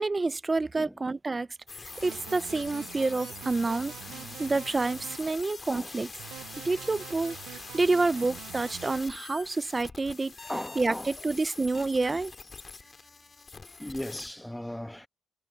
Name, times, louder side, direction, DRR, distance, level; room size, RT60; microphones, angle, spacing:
voice 1, 0.0-1.5 2.0-3.9 4.4-6.1 6.6-10.3 10.8-12.3, right 3 dB, 25° right, 0.5 m, -28 dB
sound 1, 1.7-14.3, left 4 dB, 35° left, 2.0 m, -44 dB
sound 2, 1.9-5.3 6.2-9.0, right 14 dB, 85° right, 0.3 m, -45 dB
voice 2, 4.1-4.4 5.6-5.9 6.5-6.7 10.4-11.1 11.8-12.2 12.8-12.9 13.8-15.1, left 1 dB, 5° left, 1.1 m, -39 dB
cardioid pair, 90°, 0 cm